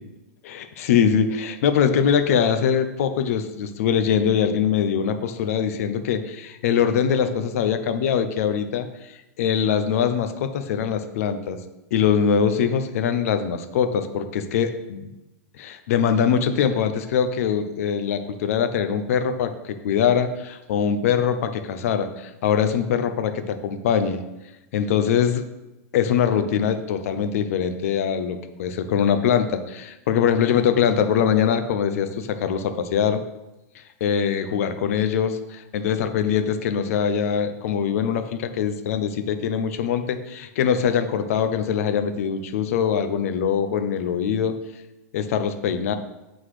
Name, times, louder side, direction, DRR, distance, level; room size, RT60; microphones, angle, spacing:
voice 1, 0.4-8.9 9.4-11.6 11.9-15.1 15.6-24.2 24.7-25.4 25.9-33.2 33.7-44.5 45.1-45.9, left 7 dB, 65° left, 9 dB, 0.8 m, -22 dB
7.9 x 4.0 x 4.9 m, 0.99 s
supercardioid pair, 155°, 8 cm